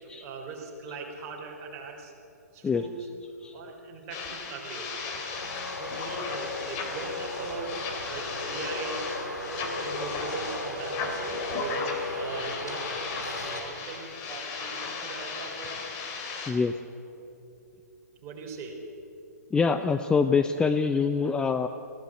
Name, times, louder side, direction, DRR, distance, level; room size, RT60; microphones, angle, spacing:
voice 1, 0.0-2.1 2.5-3.1 3.5-4.9 5.8-7.8 8.1-9.1 9.8-12.9 13.4-15.9 18.2-18.8, right 4 dB, 30° right, 0 dB, 4.2 m, -40 dB
sound 1, 4.1-16.5, left 4 dB, 30° left, 3.1 m, -37 dB
Traffic noise roadway noise, 5.4-13.6, left 2 dB, 85° left, 3.1 m, -35 dB
voice 2, 19.5-21.7, left 5 dB, 10° left, 8 dB, 0.5 m, -24 dB
22.0 x 16.0 x 7.9 m, 2.9 s
figure-of-eight pair, 120°, 9 cm